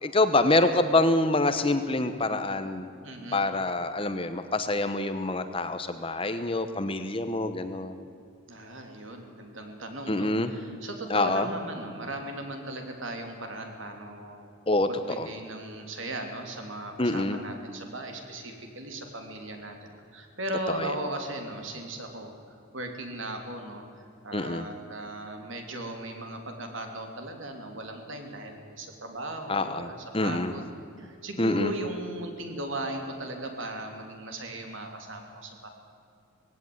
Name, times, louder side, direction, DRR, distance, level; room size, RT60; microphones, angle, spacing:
voice 1, 0.0-2.9 3.3-8.0 10.1-10.5 11.1-11.5 14.7-14.9 15.2-15.3 17.0-17.4 20.7-20.9 24.3-24.7 29.5-30.5 31.4-31.7, left 2 dB, 25° left, 9 dB, 1.0 m, -26 dB
voice 2, 3.0-3.4 8.5-14.5 14.9-23.8 24.2-30.7 31.0-35.7, right 1 dB, 60° right, 4 dB, 3.2 m, -37 dB
19.5 x 16.5 x 9.5 m, 2.4 s
head